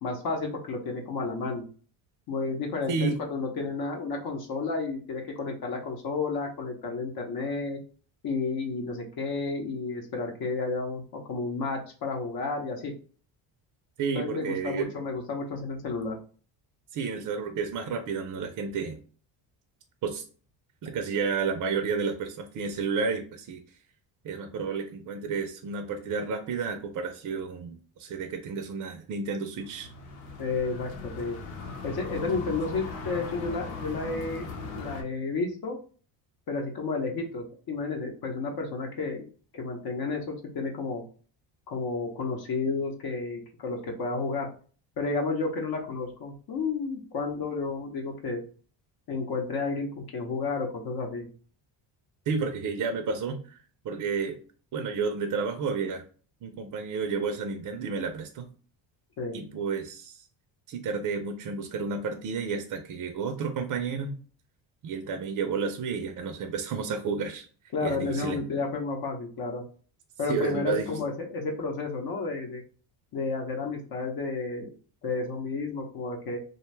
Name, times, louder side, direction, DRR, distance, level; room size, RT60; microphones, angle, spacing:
voice 1, 0.0-1.6 2.3-7.8 8.2-12.9 14.1-16.2 30.4-31.4 31.8-34.5 34.8-35.8 36.5-39.3 39.5-41.0 41.7-44.5 45.0-48.4 49.1-51.3 59.2-59.4 67.7-69.6 70.2-72.6 73.1-74.7 75.0-76.4, left 3 dB, 50° left, 2 dB, 0.7 m, -31 dB
voice 2, 14.0-14.9 16.9-19.0 20.0-20.2 20.8-23.6 24.2-29.9 52.3-54.4 54.7-56.0 56.4-58.5 59.3-60.2 60.7-64.1 64.8-67.5 67.8-68.4 70.3-71.0, right 5 dB, 45° right, 6 dB, 0.5 m, -31 dB
sound 1, 29.6-35.0, left 3 dB, 80° left, 0.9 m, -38 dB
2.6 x 2.2 x 3.1 m, 0.41 s
cardioid pair, 90°, 46 cm